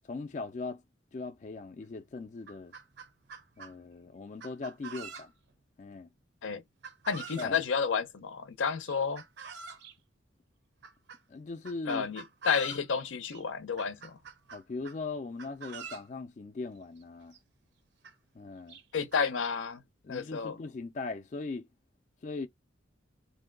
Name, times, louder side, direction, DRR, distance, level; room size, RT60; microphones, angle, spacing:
voice 1, 0.0-0.8 1.1-2.7 3.6-5.3 5.8-6.1 7.4-7.6 11.3-12.1 14.5-17.3 18.3-18.8 20.0-21.7 22.2-22.5, left 3 dB, 40° left, 0.3 m, -39 dB
Chicken rooster, 1.8-1.9 2.3-3.7 4.4-5.5 6.8-7.6 8.9-9.9 10.8-11.2 11.7-12.9 13.3-13.4 13.8-15.0 15.4-16.1 17.0-17.1 17.3-17.4 18.0-18.1 18.7-19.2, right 5 dB, 60° right, 0.6 m, -46 dB
voice 2, 7.1-9.2 11.9-14.2 18.9-19.8 20.1-20.6, left 6 dB, 90° left, 0.6 m, -31 dB
2.7 x 2.2 x 3.7 m
head